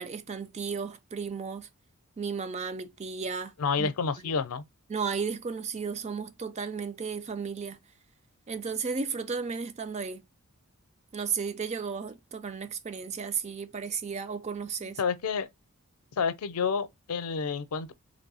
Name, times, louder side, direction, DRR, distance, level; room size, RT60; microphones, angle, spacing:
voice 1, 0.0-1.7 2.2-3.9 4.9-7.8 8.5-10.2 11.1-15.0, right 5 dB, 30° right, 0.4 m, -34 dB
voice 2, 3.6-4.6 14.8-15.5 16.2-17.9, left 5 dB, 85° left, 0.5 m, -29 dB
3.2 x 2.6 x 4.0 m
head